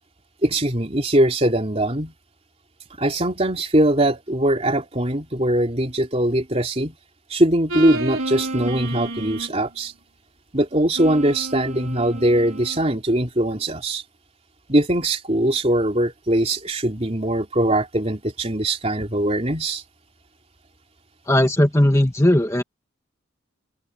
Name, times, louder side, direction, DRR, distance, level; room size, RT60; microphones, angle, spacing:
voice 1, 0.4-2.1 3.0-6.9 7.3-9.9 10.5-14.0 14.7-19.8, right 1 dB, 30° right, 3.3 m, -21 dB
sound 1, 7.7-9.6 10.9-12.8, right 2 dB, 85° right, 5.0 m, -30 dB
voice 2, 21.3-22.6, left 1 dB, 15° left, 1.5 m, -17 dB
head